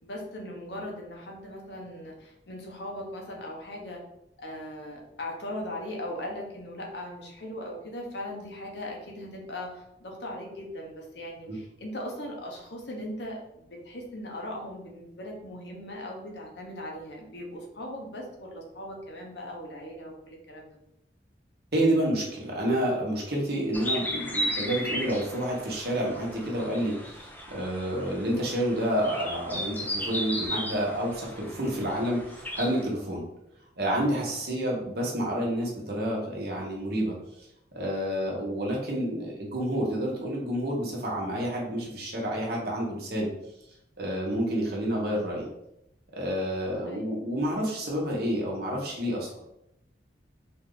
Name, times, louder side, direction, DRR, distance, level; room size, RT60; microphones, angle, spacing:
voice 1, 0.0-4.0 4.4-20.8 46.9-47.0, left 1 dB, 70° left, 0 dB, 1.0 m, -39 dB
voice 2, 21.7-33.3 33.8-37.2 37.7-43.3 44.0-45.5 46.1-49.3, right 1 dB, 60° right, -3 dB, 1.3 m, -29 dB
sound 1, 23.7-32.8, equal, 10° left, 0.6 m, -35 dB
4.1 x 2.8 x 3.9 m, 0.80 s
head